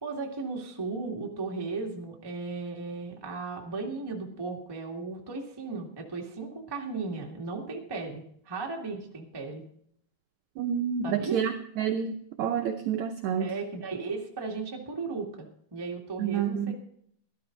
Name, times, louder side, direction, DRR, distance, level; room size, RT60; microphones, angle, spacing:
voice 1, 0.0-9.6 11.0-11.4 13.4-16.7, right 4 dB, 15° right, 0 dB, 0.8 m, -36 dB
voice 2, 10.6-13.5 16.2-16.7, right 8 dB, 75° right, 5 dB, 1.7 m, -29 dB
13.5 x 13.0 x 3.9 m, 0.68 s
omnidirectional pair, 4.2 m